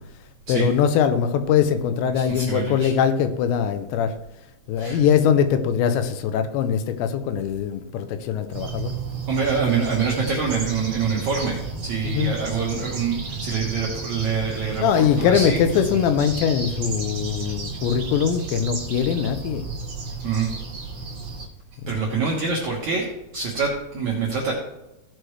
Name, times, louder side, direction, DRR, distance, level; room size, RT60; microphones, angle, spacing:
voice 1, 0.5-4.1 4.7-8.9 12.0-12.4 14.8-19.6 21.8-22.1, left 8 dB, 85° left, 10 dB, 2.9 m, -22 dB
voice 2, 2.1-2.9 4.8-5.0 9.3-15.6 20.2-20.5 21.9-23.1 23.3-24.5, right 5 dB, 70° right, -3 dB, 1.8 m, -26 dB
sound 1, 8.5-21.5, right 4 dB, 40° right, 1.9 m, -32 dB
16.5 x 6.4 x 3.1 m, 0.93 s
omnidirectional pair, 5.1 m